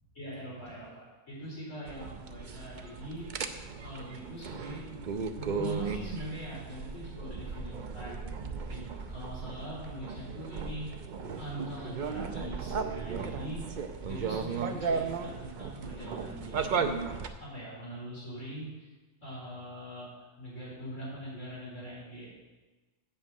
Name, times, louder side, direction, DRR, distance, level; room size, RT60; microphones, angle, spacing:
voice 1, 0.1-5.0 5.4-8.2 8.7-10.9 11.4-17.0 17.4-18.9 19.2-22.3, right 1 dB, 55° left, -7 dB, 4.8 m, -42 dB
sound 1, 1.9-17.3, right 5 dB, 50° right, 0.5 m, -36 dB
7.9 x 7.3 x 7.4 m, 1.2 s
omnidirectional pair, 1.5 m